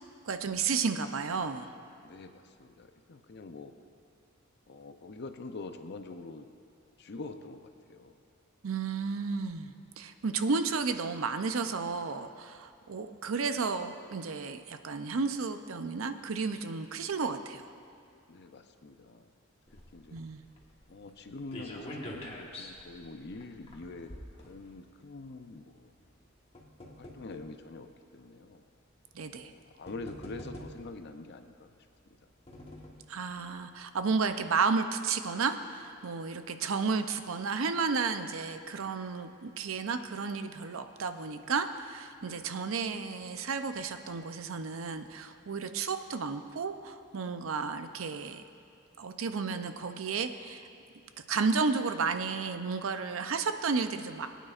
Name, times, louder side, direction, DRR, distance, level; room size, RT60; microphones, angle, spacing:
voice 1, 0.2-1.7 8.6-17.7 20.1-20.4 29.1-29.5 33.1-48.4 49.0-50.7 51.3-54.3, right 4 dB, 75° right, 8 dB, 0.6 m, -32 dB
voice 2, 2.0-3.7 4.7-6.5 7.0-8.2 18.3-19.3 19.9-20.2 20.9-25.9 26.9-28.6 29.4-31.7 32.1-32.2 42.2-42.5, left 3 dB, 55° left, 7 dB, 0.6 m, -45 dB
sound 1, 19.7-25.1 26.0-27.6 28.4-28.5 29.4-29.5 29.9-31.1 32.0-33.1 33.5-33.6 33.9-34.0, left 1 dB, 30° left, 1.4 m, -46 dB
22.5 x 9.1 x 2.5 m, 2.5 s
head